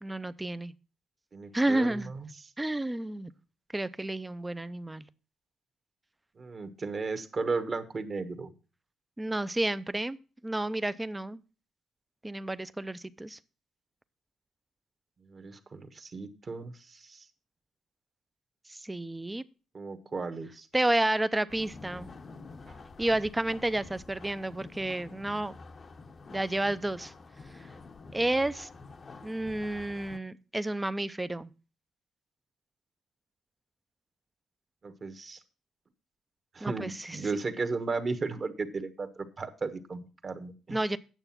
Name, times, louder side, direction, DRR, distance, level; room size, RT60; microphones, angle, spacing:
voice 1, 0.0-0.7 1.5-2.1 2.6-3.3 3.7-5.0 9.2-10.2 10.4-11.4 12.2-13.4 18.7-19.4 20.7-22.1 23.0-25.6 26.3-27.1 27.5-27.7 28.1-28.7 29.2-31.5 36.6-37.2 40.7-41.0, right 1 dB, 15° right, 15 dB, 0.5 m, -31 dB
voice 2, 1.3-2.5 6.4-8.5 15.3-17.3 19.7-20.7 22.7-22.8 34.8-35.4 36.5-40.8, right 4 dB, 40° right, 8 dB, 1.3 m, -35 dB
sound 1, 21.5-30.2, left 4 dB, 40° left, 0.8 m, -48 dB
9.1 x 6.9 x 5.8 m, 0.35 s
cardioid pair, 90°, 0 cm